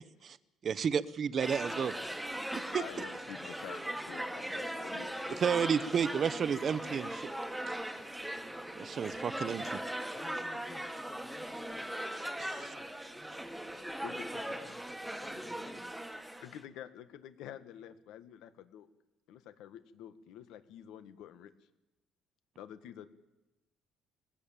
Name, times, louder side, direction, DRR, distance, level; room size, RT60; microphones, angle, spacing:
voice 1, 0.6-1.9 2.7-2.8 5.4-7.3 8.7-9.8 12.4-12.7, right 7 dB, 35° right, 17 dB, 0.8 m, -32 dB
sound 1, 1.4-16.6, right 1 dB, 5° right, 1.5 m, -39 dB
voice 2, 2.7-5.4 5.8-5.9 14.0-14.5 15.1-15.2 16.4-18.9 19.3-21.5 22.6-23.1, left 10 dB, 75° left, 10 dB, 1.7 m, -48 dB
voice 3, 4.5-5.5 10.1-11.8 12.2-12.8 13.9-14.0 14.3-14.8 15.2-15.9, left 3 dB, 15° left, 9 dB, 1.8 m, -53 dB
21.0 x 17.0 x 8.9 m, 0.96 s
cardioid pair, 155°, 0 cm